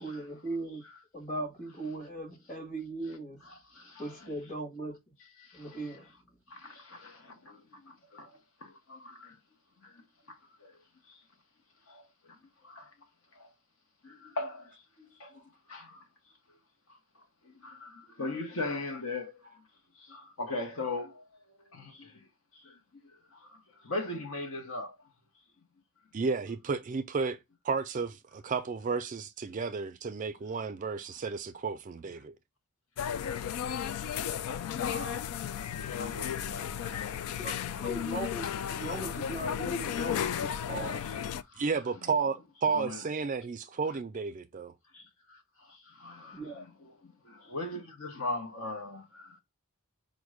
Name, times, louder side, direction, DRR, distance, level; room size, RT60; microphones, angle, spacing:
voice 1, 0.0-0.8 1.1-3.4 4.0-4.9 5.5-6.1 37.4-37.5 37.8-41.0 46.3-46.6, right 2 dB, 35° left, 1.7 m, -38 dB
voice 2, 3.4-4.3 5.2-6.2 6.5-9.4 9.8-11.3 11.8-13.5 14.0-16.6 16.9-19.7 19.9-25.1 33.1-34.1 34.4-37.9 38.2-38.3 39.0-39.3 39.9-40.0 40.4-40.5 41.0-41.7 42.0-42.1 42.6-43.0 43.9-44.0 44.9-49.4, left 2 dB, 65° left, 0.9 m, -42 dB
voice 3, 26.1-27.4 27.6-32.3 41.6-44.7, right 5 dB, 35° right, 0.4 m, -32 dB
sound 1, 33.0-41.4, left 9 dB, 80° left, 0.3 m, -34 dB
5.2 x 2.1 x 4.8 m
head